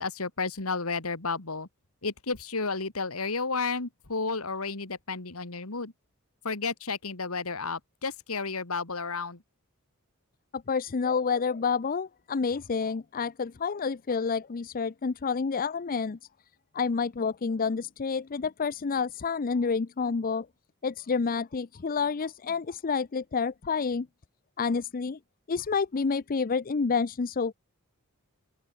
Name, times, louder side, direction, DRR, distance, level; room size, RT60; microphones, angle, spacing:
voice 1, 0.0-1.7 2.0-5.9 6.4-9.4, left 4 dB, 75° left, 2.2 m, -32 dB
voice 2, 10.5-16.2 16.7-20.5 20.8-24.1 24.6-25.2 25.5-27.5, left 5 dB, 40° left, 0.5 m, -29 dB
open air
head